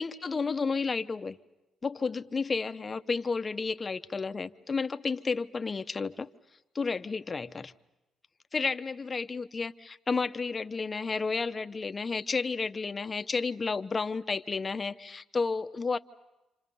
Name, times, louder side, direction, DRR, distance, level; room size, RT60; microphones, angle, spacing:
voice 1, 0.0-1.4 1.8-6.3 6.7-7.7 8.5-16.0, left 4 dB, 30° left, 10 dB, 0.8 m, -31 dB
28.5 x 27.0 x 5.4 m, 0.98 s
cardioid pair, 90°, 0 cm